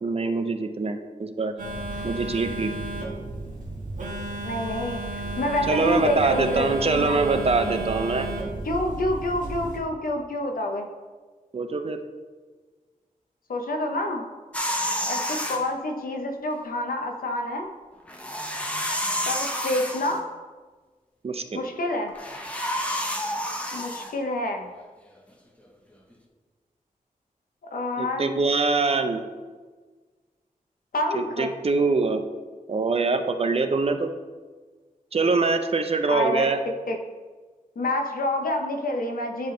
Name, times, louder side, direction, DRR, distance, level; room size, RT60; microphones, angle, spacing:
voice 1, 0.0-1.5 2.0-2.7 5.7-8.3 11.5-12.0 21.2-21.6 28.0-29.2 31.1-32.2 32.7-34.1 35.1-36.6, right 3 dB, 45° right, 7 dB, 0.5 m, -24 dB
Telephone, 1.6-9.8, right 2 dB, 65° right, 1.5 m, -33 dB
voice 2, 4.4-7.2 8.6-10.9 13.5-14.2 15.1-17.7 19.2-20.3 21.5-22.1 23.7-24.7 27.7-28.3 30.9-31.5 36.1-36.5 36.9-37.0 37.8-39.5, left 1 dB, 80° left, 3 dB, 0.8 m, -28 dB
sound 1, 14.5-15.6 18.1-20.2 22.1-24.1, equal, 10° left, 0.7 m, -29 dB
9.8 x 3.5 x 3.8 m, 1.4 s
wide cardioid pair, 110°, 15 cm